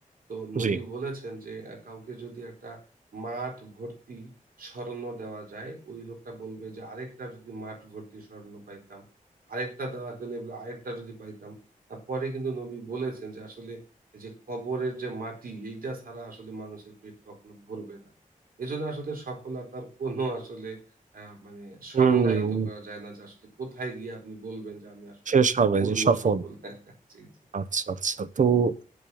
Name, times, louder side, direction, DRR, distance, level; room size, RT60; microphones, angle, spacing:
voice 1, 0.3-2.8 3.1-4.3 4.6-9.0 9.5-11.6 11.9-13.8 14.1-18.1 18.6-20.8 21.1-25.4 25.8-27.3, right 3 dB, 90° right, 1 dB, 4.3 m, -37 dB
voice 2, 21.9-22.7 25.3-26.4 27.5-28.8, right 6 dB, 60° right, 13 dB, 1.0 m, -23 dB
8.8 x 8.0 x 7.1 m, 0.37 s
wide cardioid pair, 115°, 14 cm